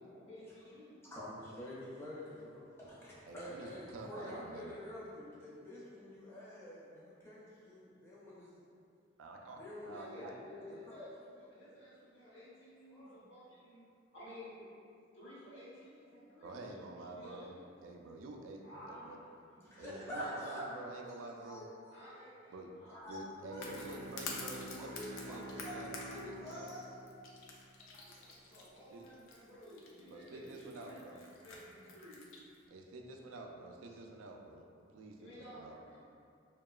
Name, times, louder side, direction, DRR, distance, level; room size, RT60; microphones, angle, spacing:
voice 1, 0.1-1.1 9.8-13.8 14.1-14.7 15.1-17.6 18.6-19.7 20.7-20.8 21.9-23.8 27.7-32.2 33.9-34.0 35.2-36.0, equal, 75° left, -9 dB, 0.9 m, -54 dB
voice 2, 1.0-8.6 9.6-10.6 10.9-11.1 12.9-13.1 19.6-20.7 21.0-22.0 22.8-23.2 23.5-23.8 24.8-27.1, left 1 dB, 15° left, -8 dB, 0.5 m, -47 dB
voice 3, 3.3-4.7 9.2-10.3 16.4-17.5 17.8-18.6 18.9-19.2 19.8-21.7 22.5-22.7 23.1-26.7 28.9-29.0 30.1-31.2 32.7-34.7 34.9-35.8, right 2 dB, 90° right, 1 dB, 0.3 m, -49 dB
Bowed string instrument, 23.4-28.3, right 1 dB, 50° right, 0.6 m, -50 dB
sound 1, 23.6-32.6, left 4 dB, 90° left, 0.4 m, -49 dB
2.8 x 2.2 x 2.3 m, 2.4 s
head